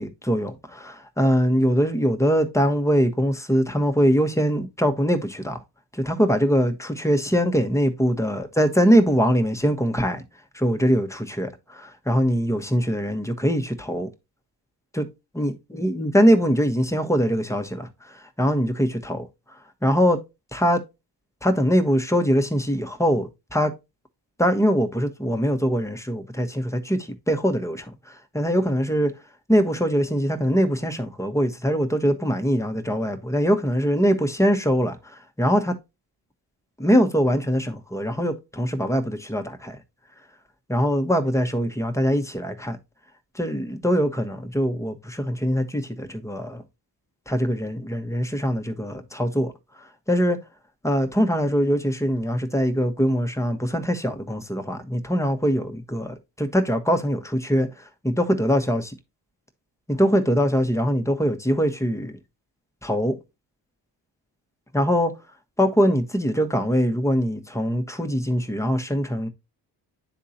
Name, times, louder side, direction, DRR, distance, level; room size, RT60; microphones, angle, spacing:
voice 1, 0.0-5.6 5.9-10.2 10.5-14.1 14.9-15.1 15.3-19.3 19.8-20.2 20.5-20.8 21.4-23.7 24.4-29.1 29.5-35.7 36.8-39.8 40.7-42.8 43.3-46.6 47.3-49.5 50.1-50.4 50.8-57.7 58.0-58.9 59.9-62.2 62.8-63.2 64.7-65.1 65.6-69.3, equal, 5° left, 1.2 m, -22 dB
10.0 x 3.7 x 2.8 m
supercardioid pair, 50°, 46 cm